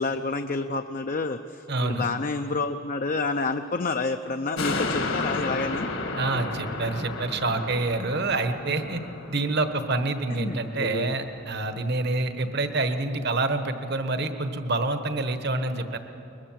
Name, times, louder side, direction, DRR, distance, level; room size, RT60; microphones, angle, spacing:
voice 1, 0.0-5.9 10.3-11.1, left 3 dB, 40° left, 6 dB, 0.6 m, -29 dB
voice 2, 1.7-2.1 6.2-9.0 9.3-16.0, right 2 dB, 50° right, 8 dB, 1.2 m, -27 dB
sound 1, 4.6-11.2 11.6-11.7, left 3 dB, 65° left, 1.8 m, -33 dB
22.5 x 21.0 x 7.5 m, 3.0 s
head